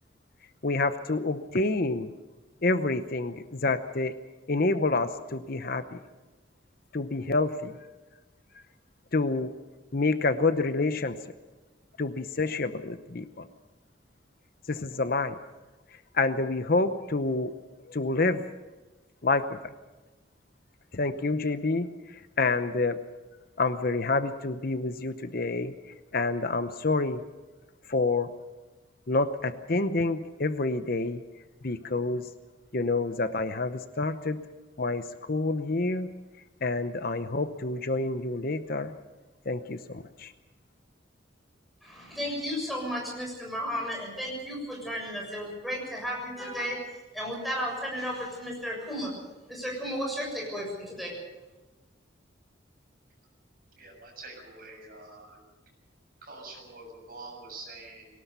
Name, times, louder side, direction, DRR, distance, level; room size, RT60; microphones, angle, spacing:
voice 1, 0.6-2.1 2.6-4.1 4.5-6.0 6.9-7.7 9.1-9.5 9.9-11.2 12.0-13.5 14.7-15.4 16.1-17.5 17.9-18.4 19.2-19.6 20.9-21.9 22.1-23.0 23.6-25.7 26.1-27.2 27.9-28.3 29.1-31.2 31.6-32.3 32.7-34.4 34.8-36.1 36.6-38.9 39.5-40.3, left 3 dB, 50° left, 10 dB, 0.8 m, -28 dB
voice 2, 41.8-49.1 49.5-51.1, equal, ahead, -2 dB, 7.0 m, -34 dB
voice 3, 53.8-55.4 56.2-58.1, right 3 dB, 45° right, 1 dB, 7.0 m, -45 dB
22.0 x 18.5 x 6.9 m, 1.2 s
head